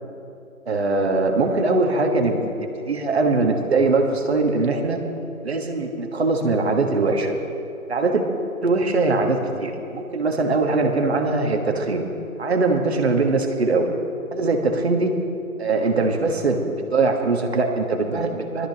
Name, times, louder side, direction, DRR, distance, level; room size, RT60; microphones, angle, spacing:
voice 1, 0.7-5.0 5.4-7.4 7.9-8.2 8.6-12.1 12.4-14.0 14.3-15.1 15.6-18.7, right 3 dB, 45° right, 3 dB, 1.5 m, -21 dB
20.0 x 13.0 x 2.9 m, 2.8 s
hypercardioid pair, 170°, 43 cm